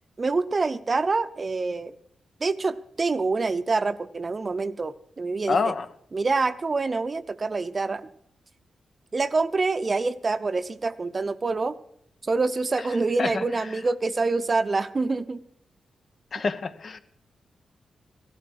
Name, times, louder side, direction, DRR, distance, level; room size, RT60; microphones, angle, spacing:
voice 1, 0.2-1.9 2.4-5.7 6.1-8.1 9.1-11.8 12.2-15.4, right 3 dB, 40° right, 13 dB, 0.8 m, -26 dB
voice 2, 5.5-5.9 13.2-13.4 16.3-17.0, left 4 dB, 55° left, 10 dB, 1.1 m, -26 dB
16.0 x 13.0 x 4.8 m, 0.70 s
cardioid pair, 80°, 0 cm